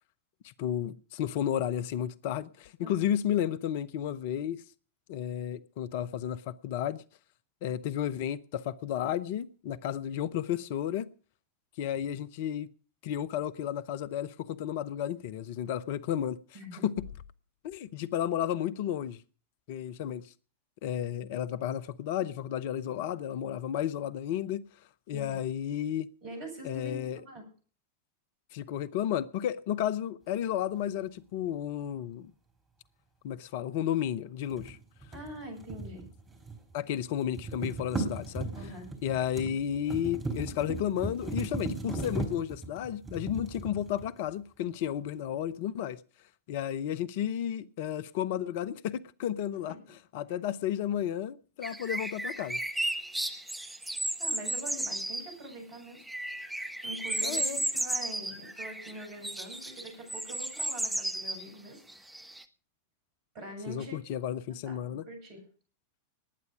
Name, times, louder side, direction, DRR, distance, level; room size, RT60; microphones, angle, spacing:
voice 1, 0.4-4.6 5.1-7.0 7.6-11.1 11.8-12.7 13.0-16.4 16.8-16.9 17.6-19.2 19.7-20.3 20.8-24.6 25.1-26.1 26.6-27.2 28.5-32.3 33.2-34.8 36.7-38.5 39.0-46.0 46.5-49.7 50.1-52.6 57.2-57.7 63.7-65.1, left 10 dB, 50° left, 0.7 m, -32 dB
voice 2, 16.5-16.9 25.1-25.4 26.2-27.5 35.1-36.0 38.5-38.9 49.7-49.8 54.2-56.0 56.8-61.8 63.3-64.0 64.5-65.4, right 1 dB, 45° right, 8.0 m, -44 dB
sound 1, 34.5-36.7 37.0-44.3, right 2 dB, 20° right, 4.0 m, -37 dB
sound 2, 51.6-55.5 56.1-61.5 61.9-62.4, right 1 dB, 5° right, 1.2 m, -34 dB
19.5 x 9.5 x 5.1 m
figure-of-eight pair, 90°, 0 cm